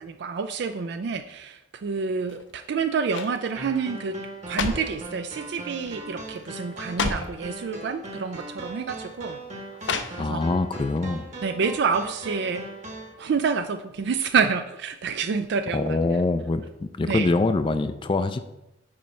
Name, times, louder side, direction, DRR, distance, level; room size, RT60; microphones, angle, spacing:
voice 1, 0.0-9.4 10.2-10.4 11.4-12.7 13.2-16.0 17.1-17.3, right 5 dB, 60° right, 8 dB, 0.3 m, -28 dB
sound 1, 2.2-2.6 3.1-3.4 4.2-5.0 5.8-6.1 6.4-6.5 6.8-7.4 8.3-8.5 9.8-10.6 11.0-11.1, left 4 dB, 75° left, 0.6 m, -31 dB
sound 2, 3.6-13.1, right 2 dB, 40° right, 1.2 m, -39 dB
voice 2, 10.2-11.3 15.7-18.4, left 3 dB, 25° left, 10 dB, 0.3 m, -24 dB
8.8 x 3.1 x 5.5 m, 0.93 s
head